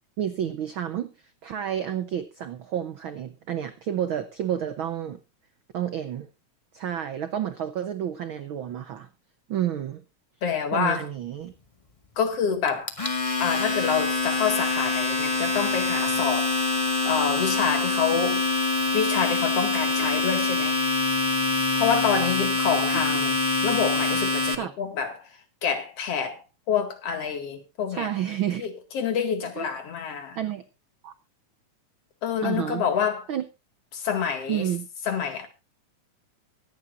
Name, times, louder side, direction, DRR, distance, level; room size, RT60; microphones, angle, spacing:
voice 1, 0.2-1.1 1.4-5.2 5.7-6.3 6.7-9.1 9.5-10.0 10.7-11.5 24.6-24.7 27.9-28.7 29.6-29.7 30.4-30.6 31.0-31.1 32.4-32.8 33.3-33.4 34.5-34.9, right 10 dB, 80° right, 1.1 m, -30 dB
voice 2, 10.4-11.1 12.2-12.9 13.4-16.5 17.0-18.6 18.9-20.8 21.7-23.4 23.6-26.4 26.7-28.1 28.6-30.4 32.2-33.3 33.9-34.7 35.1-35.5, left 7 dB, 55° left, 2.9 m, -27 dB
Domestic sounds home sounds, 12.7-24.5, left 3 dB, 25° left, 0.7 m, -25 dB
24.0 x 9.1 x 2.5 m
omnidirectional pair, 3.5 m